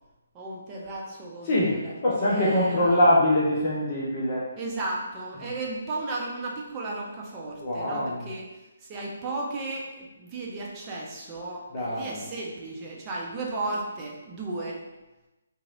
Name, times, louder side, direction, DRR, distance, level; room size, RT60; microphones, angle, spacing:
voice 1, 0.3-3.1 4.6-8.5 8.8-14.8, right 2 dB, 20° right, -3 dB, 0.6 m, -34 dB
voice 2, 1.5-4.4 7.6-8.2 11.7-12.1, left 1 dB, 35° left, -7 dB, 0.7 m, -23 dB
3.0 x 2.7 x 2.4 m, 1.1 s
figure-of-eight pair, 140°, 0 cm